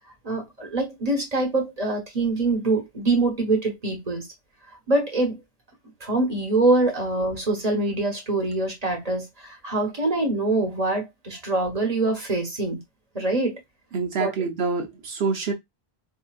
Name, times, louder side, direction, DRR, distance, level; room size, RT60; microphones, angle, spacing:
voice 1, 0.2-4.3 4.9-5.4 6.0-12.8 13.1-13.6 14.2-14.3, right 2 dB, 40° right, 1.2 m, -24 dB
voice 2, 13.9-15.5, right 5 dB, 75° right, 1.0 m, -26 dB
4.6 x 2.8 x 2.3 m
omnidirectional pair, 1.1 m